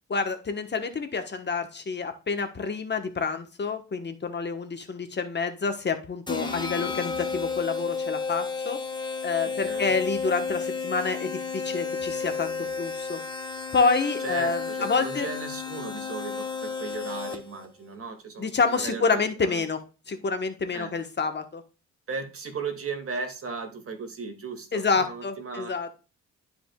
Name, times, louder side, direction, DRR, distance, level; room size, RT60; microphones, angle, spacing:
voice 1, 0.1-8.8 9.2-13.2 13.7-15.3 18.4-19.8 20.1-21.6 24.7-25.9, left 4 dB, 35° left, 7 dB, 1.2 m, -28 dB
sound 1, 6.3-17.7, left 4 dB, 15° left, 1.3 m, -32 dB
voice 2, 9.4-10.0 14.2-19.7 20.7-21.0 22.1-25.7, right 4 dB, 50° right, 5 dB, 2.4 m, -36 dB
12.0 x 5.1 x 2.3 m, 0.32 s
cardioid pair, 90°, 30 cm